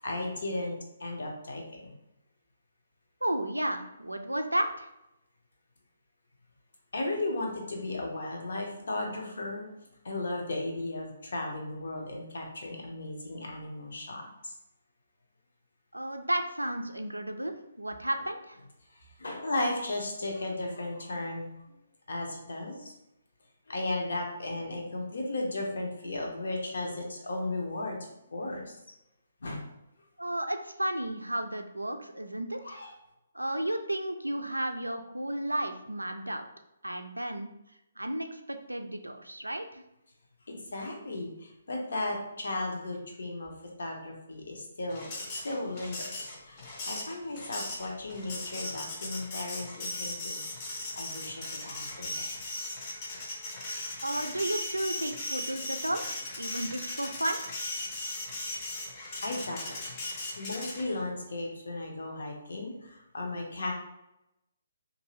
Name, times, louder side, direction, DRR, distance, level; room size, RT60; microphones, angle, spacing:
voice 1, 0.0-1.9 6.9-9.7 10.0-14.5 19.2-21.5 22.1-22.9 23.7-28.8 29.4-29.6 32.6-32.9 40.5-45.1 45.4-50.4 51.0-52.3 59.2-59.6 60.3-63.7, left 2 dB, 60° left, 0 dB, 0.7 m, -35 dB
voice 2, 3.2-4.9 15.9-18.6 30.2-32.8 33.3-36.4 36.8-37.5 38.0-39.8 54.0-56.0 56.4-57.4, right 1 dB, 85° right, 6 dB, 0.3 m, -33 dB
Printer, 44.9-61.0, left 2 dB, 30° left, 0.6 m, -38 dB
2.6 x 2.6 x 3.0 m, 0.88 s
figure-of-eight pair, 135°, 0 cm